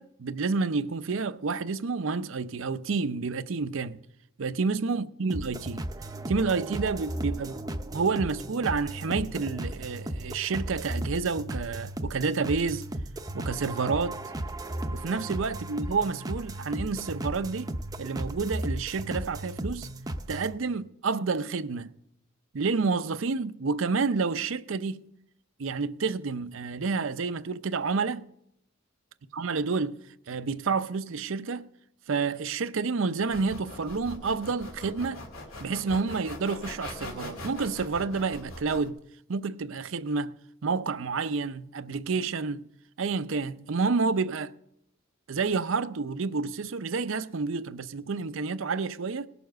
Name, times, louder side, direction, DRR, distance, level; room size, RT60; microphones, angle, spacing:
voice 1, 0.0-4.0 4.4-5.9 6.3-7.6 7.9-12.8 13.3-14.2 14.9-17.7 18.0-19.9 20.3-21.9 22.5-25.1 25.6-28.3 29.3-30.0 30.3-31.7 32.1-35.2 35.6-39.0 39.3-40.3 40.6-42.6 43.0-44.5 45.3-49.3, right 4 dB, 70° right, 0.6 m, -29 dB
sound 1, 5.3-20.5, right 1 dB, 20° right, 0.6 m, -35 dB
sound 2, 33.2-38.9, left 1 dB, 80° left, 2.4 m, -41 dB
18.5 x 6.9 x 6.3 m
head